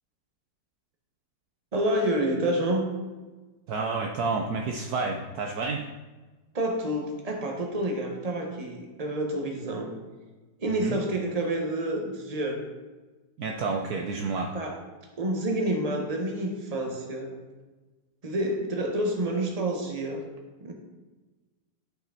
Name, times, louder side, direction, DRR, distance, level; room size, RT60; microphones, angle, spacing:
voice 1, 1.7-2.8 6.5-9.9 10.6-12.6 14.4-14.8 15.2-17.3 18.2-20.2 20.6-20.7, right 1 dB, 25° right, 1 dB, 1.2 m, -28 dB
voice 2, 3.7-5.8 10.7-11.0 13.4-14.5, right 4 dB, 65° right, 2 dB, 1.1 m, -30 dB
11.0 x 6.0 x 4.2 m, 1.2 s
omnidirectional pair, 2.0 m